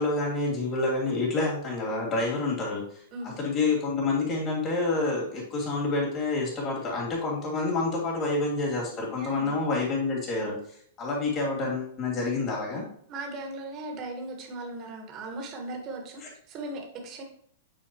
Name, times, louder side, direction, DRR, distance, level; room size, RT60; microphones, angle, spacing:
voice 1, 0.0-3.0 3.4-10.6 11.0-12.8, left 3 dB, 30° left, -3 dB, 2.9 m, -28 dB
voice 2, 9.2-9.6 13.1-17.2, right 2 dB, 35° right, 2 dB, 1.9 m, -38 dB
9.0 x 4.6 x 3.1 m, 0.64 s
figure-of-eight pair, 100°, 0 cm